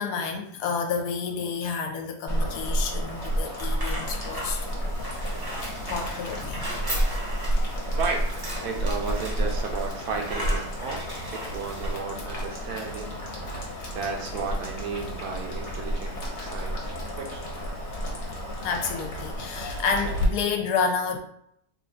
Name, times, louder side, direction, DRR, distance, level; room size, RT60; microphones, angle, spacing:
voice 1, 0.0-4.9 5.9-6.7 7.0-7.1 7.6-7.7 18.1-21.2, left 5 dB, 75° left, 4 dB, 1.1 m, -30 dB
Boiling, 2.3-20.2, equal, 50° left, 1.0 m, -31 dB
Shopping cart - wheels slow speed, 3.1-12.0, right 1 dB, 35° right, 0.3 m, -38 dB
voice 2, 7.9-8.3 8.6-13.2 13.9-16.9 17.2-17.5, right 5 dB, 75° right, 3 dB, 1.1 m, -33 dB
3.3 x 2.3 x 3.8 m, 0.70 s
omnidirectional pair, 1.8 m